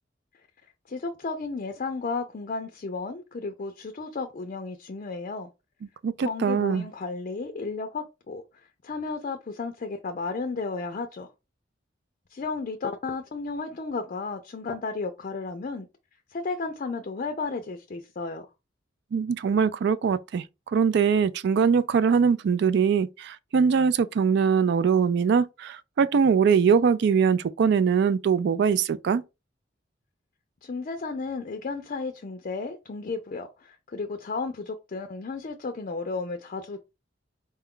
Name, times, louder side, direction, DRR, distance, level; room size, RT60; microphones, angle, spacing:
voice 1, 0.9-5.5 6.2-8.4 8.8-11.3 12.3-15.9 16.3-18.5 30.6-36.8, left 4 dB, 45° left, 0.4 m, -33 dB
voice 2, 6.0-6.9 19.1-20.4 20.7-29.2, right 6 dB, 65° right, 0.3 m, -22 dB
4.2 x 2.3 x 3.6 m
head